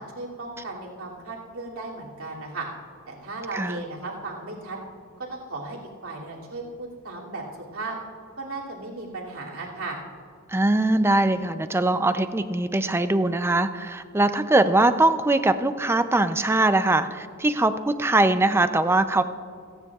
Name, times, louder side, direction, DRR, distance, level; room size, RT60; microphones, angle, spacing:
voice 1, 0.0-2.7 3.1-4.8 5.3-5.8 6.0-7.4 7.7-8.0 8.4-10.0, right 3 dB, 90° right, -4 dB, 2.7 m, -35 dB
voice 2, 10.5-19.2, right 2 dB, 10° right, 10 dB, 0.4 m, -21 dB
28.5 x 9.7 x 2.4 m, 2.3 s
head